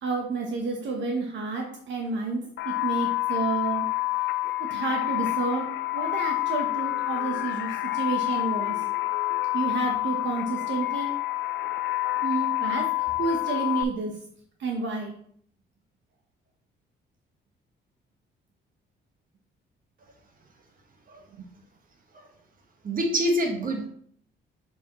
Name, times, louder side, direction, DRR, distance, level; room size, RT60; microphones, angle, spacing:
voice 1, 0.0-3.9 4.2-4.3 4.7-8.8 9.5-11.1 12.2-14.3 14.6-15.2 21.3-21.5, right 4 dB, 70° right, 1 dB, 1.0 m, -30 dB
sound 1, 2.6-13.8, left 17 dB, 65° left, 0.5 m, -28 dB
voice 2, 22.8-23.9, equal, 45° right, 3 dB, 1.4 m, -26 dB
6.7 x 5.0 x 3.0 m, 0.62 s
cardioid pair, 90°, 20 cm